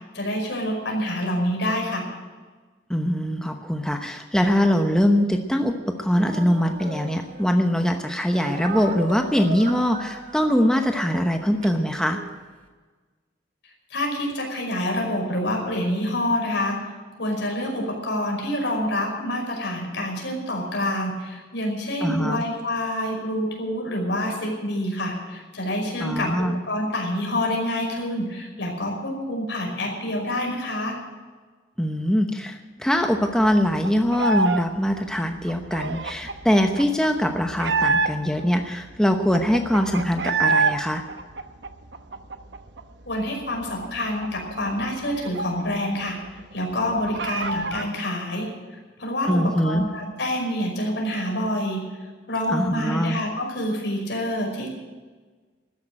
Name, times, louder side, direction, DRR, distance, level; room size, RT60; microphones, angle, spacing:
voice 1, 0.1-2.1 13.9-16.8 17.2-31.0 43.1-48.5 49.0-51.8 52.3-54.7, left 1 dB, 75° left, 0 dB, 5.4 m, -27 dB
voice 2, 2.9-12.2 22.0-22.4 26.0-26.5 31.8-41.0 49.3-49.9 52.5-53.2, equal, 5° left, 4 dB, 0.9 m, -22 dB
Speech, 6.1-7.7 8.3-12.4, right 2 dB, 45° right, 2.0 m, -37 dB
sound 1, 33.0-34.6 34.9-38.4 38.8-38.9 39.1-40.8 41.1-42.8 43.1-43.2 43.5-46.0 46.3-46.4 46.7-47.9, right 4 dB, 70° right, 1.0 m, -27 dB
13.5 x 10.5 x 8.8 m, 1.4 s
head